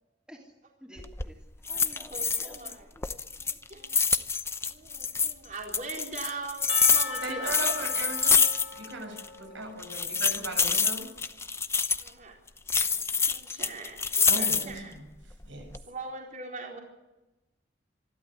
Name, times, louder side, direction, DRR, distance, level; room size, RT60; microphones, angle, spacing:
voice 1, 0.8-1.4 1.7-3.1, equal, 5° right, 0 dB, 3.3 m, -51 dB
sound 1, 1.0-1.3 1.7-2.7 3.0-5.3 5.7-8.9 9.2-9.3 9.8-12.1 12.7-14.8 15.3-15.8, left 5 dB, 15° left, 0.7 m, -26 dB
voice 2, 2.1-4.1 4.7-7.7 11.9-12.3 12.9-13.0 13.3-14.9 15.9-16.8, right 3 dB, 45° right, 1 dB, 4.1 m, -41 dB
Percussion / Church bell, 6.7-10.7, left 4 dB, 70° left, 1.3 m, -41 dB
voice 3, 7.2-8.4 8.8-11.1 14.3-15.0 15.4-15.7, right 2 dB, 90° right, 5 dB, 7.0 m, -38 dB
26.5 x 12.0 x 9.8 m, 1.0 s
head